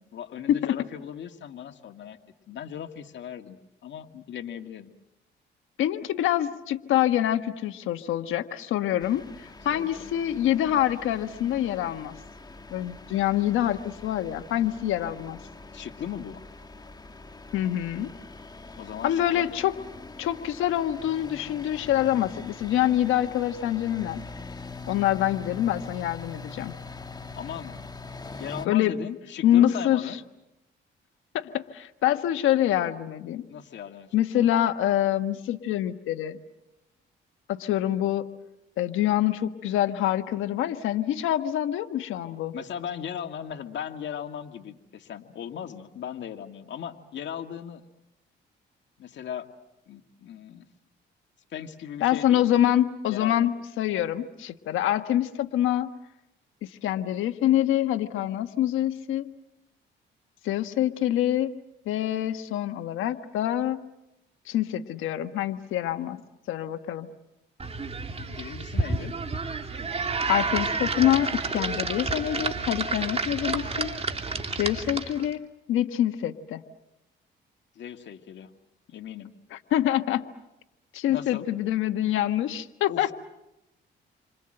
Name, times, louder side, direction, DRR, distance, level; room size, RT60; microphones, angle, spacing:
voice 1, 0.1-2.2 2.5-4.9 9.7-10.1 15.7-16.4 18.7-19.5 27.4-27.9 28.3-30.2 33.5-34.5 42.5-47.8 49.0-49.5 49.9-50.7 51.5-52.7 53.0-53.5 68.2-69.1 77.8-78.5 78.9-79.3 81.1-81.5 82.9-83.1, left 9 dB, 65° left, 5 dB, 2.1 m, -38 dB
voice 2, 5.8-12.1 12.7-15.4 17.5-18.1 19.0-19.7 20.2-24.2 24.9-26.7 28.7-28.9 29.4-30.0 31.3-33.5 34.1-36.4 37.5-38.3 38.8-42.5 52.0-55.9 56.6-59.3 60.4-61.5 61.9-63.8 64.5-66.2 66.5-67.1 70.3-73.9 74.6-75.4 75.7-76.6 79.5-80.2 80.9-83.1, left 12 dB, 85° left, 8 dB, 1.3 m, -25 dB
sound 1, 9.0-28.7, left 3 dB, 20° left, 1.3 m, -43 dB
sound 2, 67.6-75.3, right 3 dB, 30° right, 2.7 m, -30 dB
29.0 x 25.5 x 7.8 m, 0.92 s
cardioid pair, 90°, 20 cm